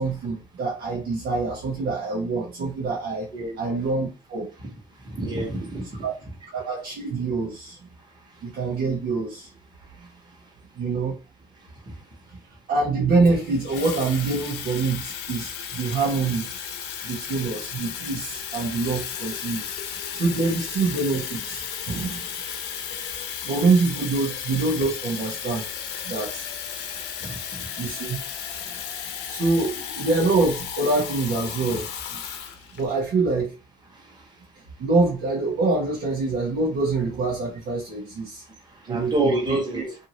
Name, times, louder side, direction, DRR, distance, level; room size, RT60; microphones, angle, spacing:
voice 1, 0.0-3.3 3.6-4.5 6.0-6.1 6.5-7.8 8.4-9.5 10.8-11.2 12.3-12.4 12.7-16.5 17.0-19.6 19.9-22.3 23.4-25.7 26.0-26.5 27.8-28.2 29.3-32.2 32.7-33.6 34.8-38.4 38.9-39.6, right 3 dB, 70° right, 1.0 m, -25 dB
voice 2, 5.0-6.0 27.2-27.4 38.8-39.9, right 2 dB, 25° right, 1.3 m, -27 dB
Water tap faucet / Fill (with liquid), 13.2-33.0, left 8 dB, 85° left, 0.7 m, -34 dB
2.7 x 2.7 x 2.9 m
cardioid pair, 110°, 17 cm